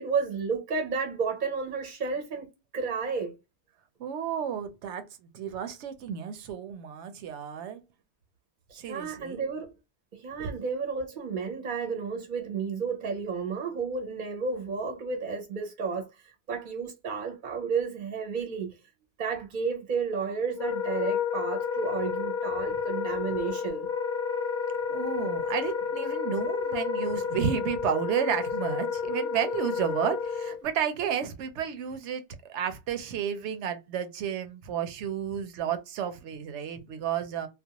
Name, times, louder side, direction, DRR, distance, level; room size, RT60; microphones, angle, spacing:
voice 1, 0.0-2.5 2.7-3.3 8.7-9.7 10.1-18.8 19.2-23.9, right 5 dB, 50° right, 0.6 m, -32 dB
voice 2, 4.0-7.8 8.7-9.4 10.4-10.6 24.9-37.5, right 8 dB, 80° right, 0.9 m, -32 dB
Wind instrument woodwind instrument, 20.5-30.6, left 6 dB, 55° left, 0.6 m, -31 dB
2.3 x 2.2 x 2.8 m
omnidirectional pair, 1.2 m